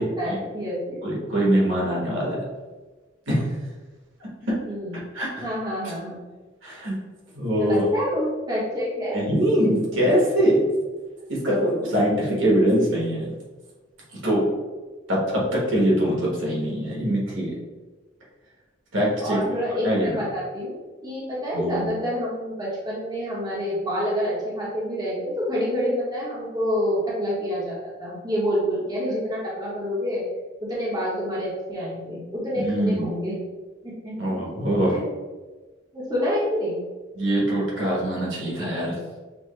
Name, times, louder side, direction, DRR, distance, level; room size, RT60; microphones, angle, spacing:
voice 1, 0.0-1.0 4.6-5.0 5.4-6.2 7.6-9.2 12.0-12.1 19.2-20.8 21.0-30.2 30.6-33.3 33.8-34.4 34.9-35.1 35.9-36.8, equal, 20° right, -7 dB, 1.0 m, -27 dB
voice 2, 1.0-2.4 3.3-3.5 4.4-4.5 5.1-5.5 6.6-6.9 7.3-7.8 9.1-10.6 11.3-13.3 14.1-14.4 15.1-17.5 18.9-19.4 19.8-20.2 21.5-21.8 32.5-33.1 34.2-35.0 37.1-38.9, right 1 dB, 85° right, -4 dB, 1.5 m, -23 dB
6.1 x 2.2 x 3.2 m, 1.3 s
head